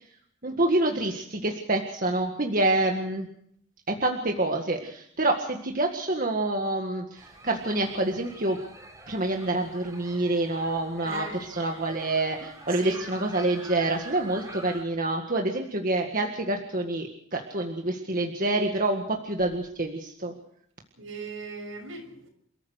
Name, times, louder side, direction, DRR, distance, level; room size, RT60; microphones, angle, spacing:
voice 1, 0.4-3.3 3.9-8.6 9.1-20.3, right 2 dB, 45° right, 2 dB, 1.8 m, -27 dB
sound 1, 7.2-14.8, right 2 dB, 15° right, 4.2 m, -46 dB
voice 2, 11.0-11.4 12.7-13.0 21.0-22.3, right 3 dB, 75° right, 4 dB, 6.5 m, -38 dB
29.0 x 14.0 x 6.5 m, 0.67 s
head